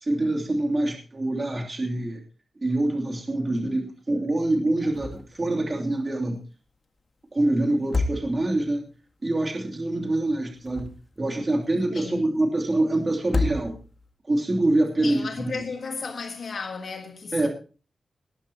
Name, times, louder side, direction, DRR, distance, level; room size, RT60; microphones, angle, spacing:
voice 1, 0.0-2.2 2.6-6.4 7.3-8.8 9.2-13.8 14.2-15.6 17.3-17.5, right 2 dB, 30° right, 2.9 m, -25 dB
sound 1, 4.9-5.4 5.7-5.8 7.7-8.7 10.4-11.3 13.2-14.1, left 3 dB, 35° left, 1.7 m, -29 dB
voice 2, 11.9-12.2 15.0-17.5, left 4 dB, 65° left, 1.6 m, -34 dB
19.0 x 12.0 x 3.0 m
wide cardioid pair, 120°, 0 cm